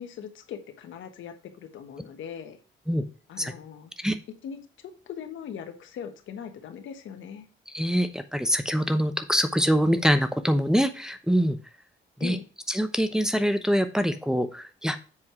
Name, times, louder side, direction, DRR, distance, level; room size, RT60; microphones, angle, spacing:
voice 1, 0.0-2.6 3.3-3.9 4.4-7.5 12.2-12.4, left 8 dB, 75° left, 7 dB, 1.3 m, -40 dB
voice 2, 7.7-11.6 12.2-12.4 12.7-15.0, equal, 5° right, 7 dB, 0.8 m, -24 dB
7.5 x 4.6 x 4.7 m, 0.35 s
cardioid pair, 90°, 20 cm